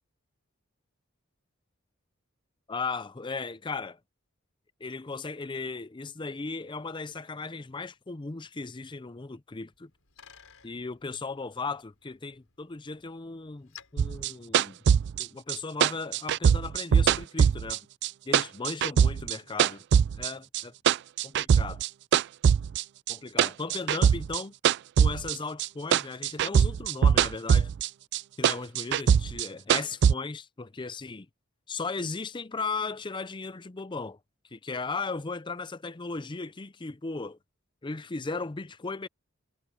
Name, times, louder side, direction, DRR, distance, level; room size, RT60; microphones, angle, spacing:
voice 1, 2.7-4.0 4.8-9.9 10.6-14.8 15.2-17.9 18.3-19.8 20.2-20.7 21.2-21.8 23.1-24.5 25.0-27.7 28.4-31.3 31.7-34.2 34.5-37.4 37.8-39.1, left 4 dB, 25° left, 0.5 m, -36 dB
Bicycle, 9.6-15.2, left 9 dB, 90° left, 4.7 m, -57 dB
sound 1, 14.0-18.1 18.3-20.3 20.5-21.9 22.1-25.7 25.9-27.9 28.1-30.1, right 8 dB, 55° right, 0.3 m, -22 dB
head